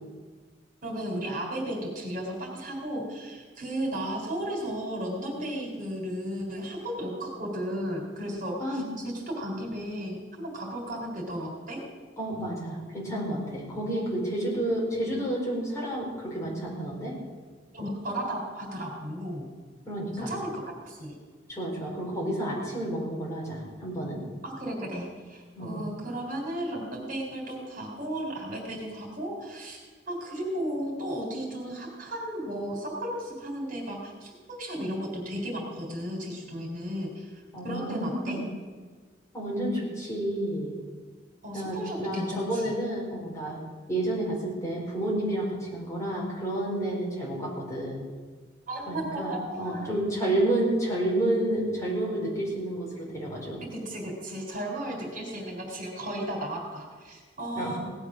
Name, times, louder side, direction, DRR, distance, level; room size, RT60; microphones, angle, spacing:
voice 1, 0.8-11.8 17.7-19.5 20.2-21.2 24.4-29.8 30.1-38.4 41.4-42.7 48.7-50.0 53.7-57.8, right 1 dB, 50° right, 0 dB, 3.6 m, -34 dB
voice 2, 12.2-17.1 19.9-20.3 21.5-24.2 25.5-25.8 37.5-38.4 39.3-40.7 41.5-43.6 43.9-48.0 48.9-53.6 57.5-57.8, right 1 dB, 15° left, -4 dB, 4.7 m, -30 dB
18.0 x 12.0 x 6.3 m, 1.5 s
head